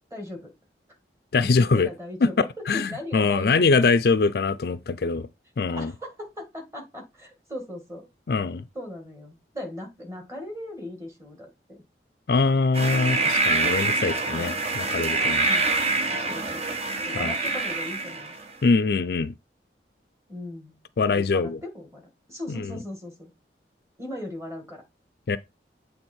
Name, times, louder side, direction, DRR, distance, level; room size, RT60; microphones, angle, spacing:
voice 1, 0.1-0.5 1.6-3.9 5.7-8.1 8.7-11.8 15.4-15.7 16.1-16.7 17.1-18.3 20.3-20.8 21.1-22.0 22.3-23.3 24.0-24.8, left 1 dB, 15° right, 1.9 m, -38 dB
voice 2, 1.3-1.9 2.2-2.3 2.7-5.3 5.6-5.9 8.3-8.6 12.3-15.5 17.2-17.3 18.6-19.3 21.0-21.6 22.5-22.7 25.3-25.4, left 4 dB, 60° left, 0.4 m, -23 dB
sound 1, 12.7-18.5, right 3 dB, 35° right, 0.9 m, -25 dB
7.9 x 3.4 x 4.4 m
head